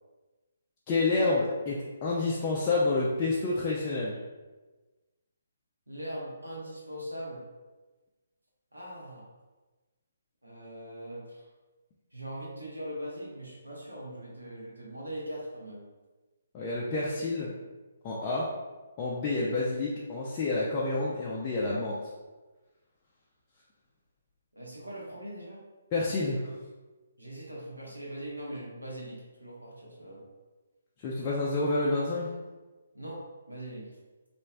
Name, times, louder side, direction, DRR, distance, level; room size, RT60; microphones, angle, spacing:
voice 1, 0.9-4.2 16.5-17.5 18.0-18.5 19.0-22.0 25.9-26.5 31.0-32.3, left 2 dB, 25° left, -5 dB, 0.4 m, -29 dB
voice 2, 5.9-7.5 8.7-9.3 10.4-11.5 12.1-15.8 24.5-25.6 27.2-30.2 32.9-33.9, right 1 dB, 85° right, -5 dB, 0.8 m, -41 dB
3.0 x 2.5 x 2.2 m, 1.2 s
figure-of-eight pair, 135°, 0 cm